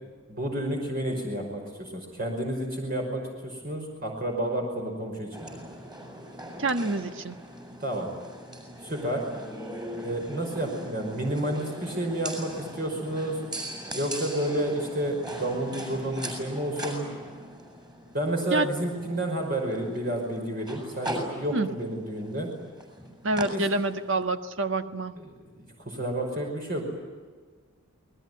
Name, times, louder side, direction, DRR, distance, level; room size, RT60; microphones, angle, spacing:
voice 1, 0.3-5.6 7.8-8.1 8.8-9.2 10.0-13.4 14.0-17.1 18.1-22.5 23.5-23.6 25.2-26.9, right 1 dB, 45° right, 1 dB, 5.5 m, -30 dB
sound 1, 5.3-24.2, right 1 dB, 20° right, 7.3 m, -40 dB
voice 2, 6.6-7.3 18.5-18.7 21.5-21.7 23.2-25.2, right 2 dB, 65° right, 8 dB, 1.4 m, -27 dB
28.5 x 21.0 x 9.5 m, 1.5 s
head